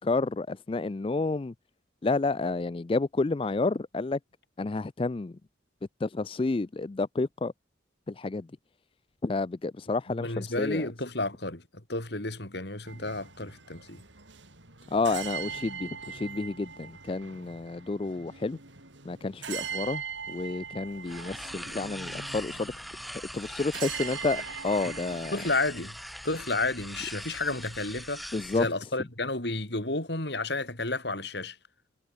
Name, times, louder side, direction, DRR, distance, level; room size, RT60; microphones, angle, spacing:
voice 1, 0.0-1.5 2.0-4.2 4.6-5.3 6.0-7.5 8.1-8.5 9.2-10.9 14.9-18.6 19.1-20.0 20.3-22.7 23.3-25.4 28.3-28.7, left 3 dB, 30° left, 0.4 m, -30 dB
voice 2, 10.1-14.0 25.3-26.0 26.2-28.2 28.5-31.6, left 2 dB, 60° left, 4.1 m, -31 dB
sound 1, 12.8-25.6, right 6 dB, 80° right, 5.6 m, -41 dB
sound 2, 21.0-28.7, equal, ahead, 2.0 m, -41 dB
head